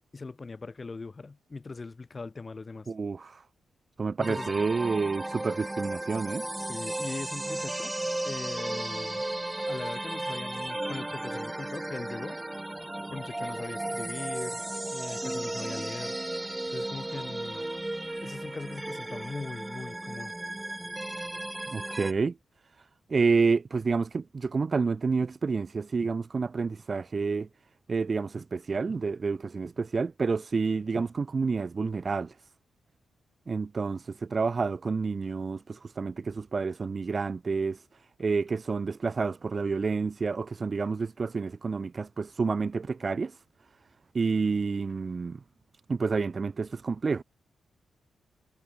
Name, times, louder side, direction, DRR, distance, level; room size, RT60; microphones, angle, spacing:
voice 1, 0.0-2.9 4.2-4.6 6.6-7.9 8.2-9.3 9.7-12.4 13.1-14.6 14.9-16.2 16.7-17.7 18.2-20.3, left 3 dB, 35° left, 3.8 m, -40 dB
voice 2, 2.9-3.4 4.0-6.4 21.7-22.3 23.1-27.5 27.9-32.3 33.5-37.8 38.2-43.4 44.1-45.4 45.9-47.2, right 4 dB, 40° right, 1.9 m, -29 dB
sound 1, 4.2-22.1, right 1 dB, 15° right, 3.6 m, -35 dB
cardioid pair, 75°, 0 cm